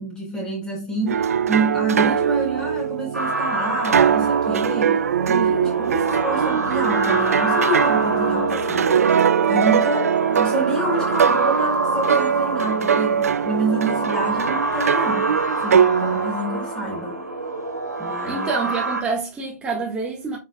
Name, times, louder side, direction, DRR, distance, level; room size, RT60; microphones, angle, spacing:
voice 1, 0.0-5.0 5.3-9.0 9.5-15.3 15.6-17.2 18.0-18.5, right 2 dB, 10° left, 3.9 m, -28 dB
sound 1, 1.1-16.3, right 7 dB, 65° right, 0.5 m, -21 dB
sound 2, 3.1-19.0, right 2 dB, 90° right, 2.0 m, -27 dB
voice 2, 18.3-20.4, right 4 dB, 10° right, 1.4 m, -27 dB
8.2 x 5.7 x 2.2 m
figure-of-eight pair, 120°, 9 cm